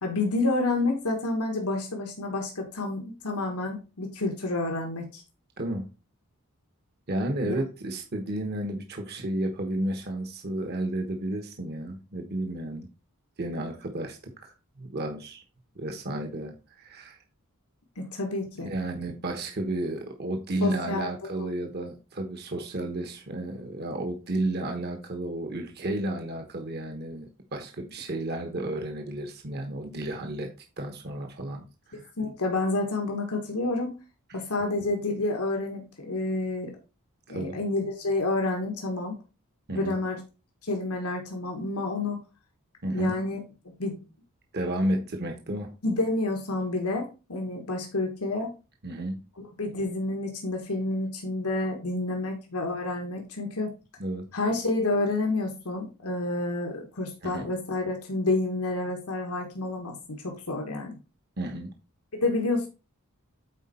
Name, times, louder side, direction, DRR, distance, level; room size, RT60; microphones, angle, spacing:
voice 1, 0.0-5.2 7.4-7.5 18.0-18.7 20.6-21.1 32.2-33.9 34.3-36.7 37.3-39.2 39.7-40.2 40.6-42.2 42.9-43.4 43.8-44.0 45.8-48.5 49.6-53.7 54.3-60.0 60.2-61.0 62.1-62.7, left 2 dB, 90° left, 2 dB, 1.4 m, -29 dB
voice 2, 5.6-5.9 7.1-12.9 13.4-15.4 15.7-17.2 18.6-30.5 30.8-32.1 34.3-34.4 34.8-34.9 37.3-37.6 39.7-40.0 42.8-43.2 44.5-45.7 48.8-49.2 54.0-54.3 57.2-57.5 61.4-61.7, right 1 dB, 45° right, 4 dB, 1.1 m, -32 dB
8.2 x 4.5 x 4.2 m, 0.31 s
head